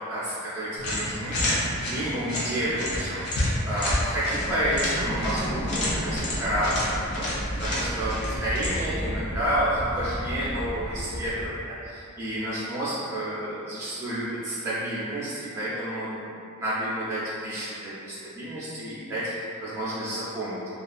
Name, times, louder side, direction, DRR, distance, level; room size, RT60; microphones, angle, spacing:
voice 1, 0.0-7.3 7.6-16.3 16.6-20.6, equal, 10° right, -11 dB, 0.4 m, -30 dB
sound 1, 0.8-9.0, left 1 dB, 80° left, 0.6 m, -30 dB
sound 2, 4.4-11.5, equal, 50° left, 1.4 m, -33 dB
2.6 x 2.3 x 2.3 m, 2.6 s
head